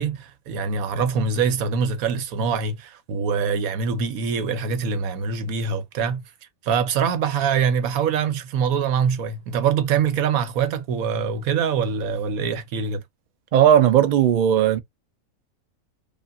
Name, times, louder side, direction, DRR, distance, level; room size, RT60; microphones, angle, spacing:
voice 1, 0.0-6.2 6.6-13.0, right 6 dB, 85° right, 1.2 m, -24 dB
voice 2, 13.5-14.8, right 10 dB, 65° right, 0.4 m, -16 dB
5.0 x 2.5 x 2.5 m
omnidirectional pair, 1.5 m